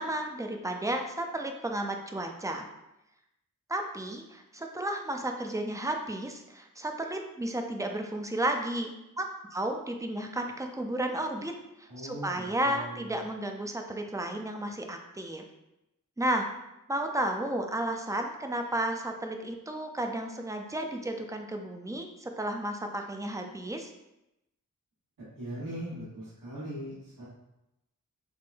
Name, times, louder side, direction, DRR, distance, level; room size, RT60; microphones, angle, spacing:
voice 1, 0.0-2.7 3.7-9.3 9.5-11.5 11.8-15.4 16.2-16.5 16.9-23.9, right 1 dB, 10° right, 4 dB, 0.4 m, -33 dB
voice 2, 11.9-13.1 25.3-27.2, right 1 dB, 85° right, -10 dB, 1.3 m, -40 dB
3.6 x 3.2 x 2.5 m, 0.89 s
wide cardioid pair, 60°, 33 cm